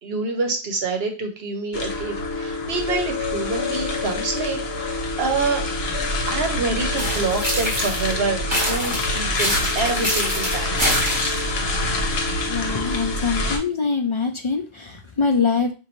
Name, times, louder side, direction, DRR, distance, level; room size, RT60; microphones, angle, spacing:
voice 1, 0.0-5.6 6.3-10.8, right 3 dB, 70° right, 4 dB, 1.0 m, -27 dB
sound 1, 1.7-13.6, left 2 dB, 75° left, 1.1 m, -26 dB
sound 2, 7.0-8.1 8.5-11.5, equal, 25° right, 1.6 m, -25 dB
voice 2, 12.5-15.7, left 5 dB, 55° left, 4 dB, 0.3 m, -23 dB
5.1 x 2.6 x 3.0 m, 0.32 s
omnidirectional pair, 1.1 m